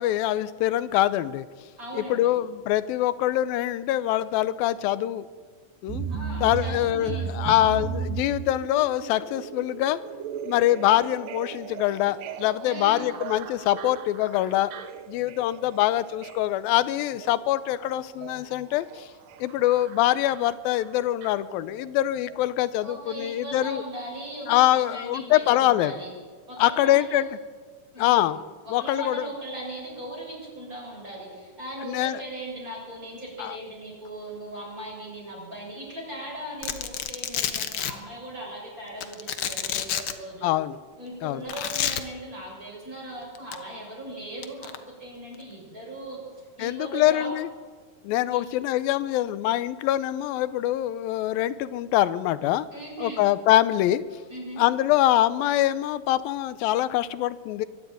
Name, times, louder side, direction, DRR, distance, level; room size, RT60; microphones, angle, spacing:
voice 1, 0.0-1.5 2.0-5.3 5.8-6.1 6.4-10.0 10.5-14.7 15.1-19.1 19.4-23.8 24.5-25.9 26.6-27.3 28.0-28.4 28.7-29.2 31.9-32.2 33.4-33.6 40.4-40.8 41.2-41.4 46.6-47.5 48.0-52.7 53.0-54.0 54.6-57.7, left 14 dB, 90° left, 15 dB, 2.5 m, -24 dB
voice 2, 1.8-2.3 6.1-7.9 12.6-13.1 22.8-26.1 26.5-27.2 27.9-40.5 41.0-44.7 45.0-47.3 48.3-48.4 52.7-53.3 54.3-54.7, right 1 dB, 20° right, -3 dB, 7.2 m, -38 dB
sound 1, 5.9-22.0 22.3-22.4, right 7 dB, 80° right, 2.5 m, -37 dB
Domestic sounds home sounds, 36.6-37.9 39.0-40.1 41.5-42.0 43.3-43.5 44.4-44.8, left 9 dB, 70° left, 1.2 m, -29 dB
23.0 x 12.0 x 9.3 m, 1.5 s
omnidirectional pair, 4.1 m